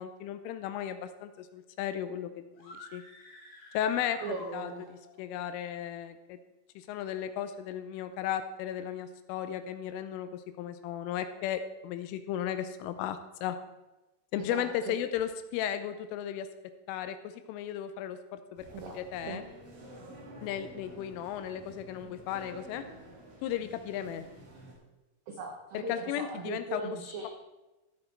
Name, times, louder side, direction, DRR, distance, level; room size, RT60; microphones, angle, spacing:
voice 1, 0.0-3.0 3.7-4.2 4.5-6.4 6.8-13.6 14.3-16.5 16.9-18.7 18.9-19.4 20.4-22.8 23.4-24.3 25.7-26.8, left 10 dB, 80° left, 10 dB, 3.0 m, -35 dB
sound 1, 2.5-5.1, left 1 dB, 50° left, 4.9 m, -50 dB
voice 2, 4.2-4.9 14.4-14.9 18.7-19.0 19.3-19.4 25.3-27.3, right 2 dB, 80° right, 1 dB, 2.1 m, -38 dB
sound 2, 18.6-24.7, right 1 dB, 35° right, 3.1 m, -50 dB
14.5 x 7.6 x 4.4 m, 1.1 s
omnidirectional pair, 5.9 m